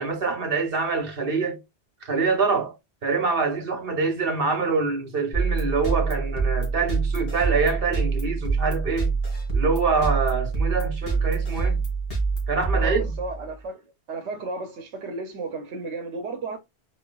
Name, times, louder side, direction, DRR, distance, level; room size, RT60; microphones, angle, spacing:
voice 1, 0.0-1.6 2.0-2.7 3.0-9.1 9.5-11.8 12.5-13.1, right 4 dB, 55° right, 1.4 m, -25 dB
sound 1, 5.3-13.5, right 4 dB, 60° left, 2.0 m, -26 dB
voice 2, 12.7-13.8 14.1-16.6, right 3 dB, 90° right, 1.0 m, -33 dB
4.6 x 3.1 x 2.3 m
omnidirectional pair, 1.1 m